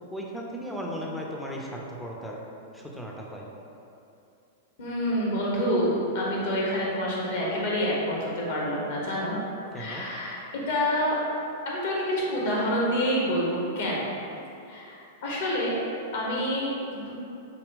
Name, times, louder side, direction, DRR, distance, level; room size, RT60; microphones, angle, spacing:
voice 1, 0.1-2.4 2.7-3.5 9.7-10.1, equal, 5° left, -3 dB, 0.5 m, -36 dB
voice 2, 4.8-9.3 9.7-10.4 10.7-11.2 11.6-14.1 14.6-15.8 16.1-17.1, equal, 55° left, -4 dB, 1.1 m, -27 dB
5.0 x 2.2 x 3.8 m, 2.7 s
figure-of-eight pair, 100°, 0 cm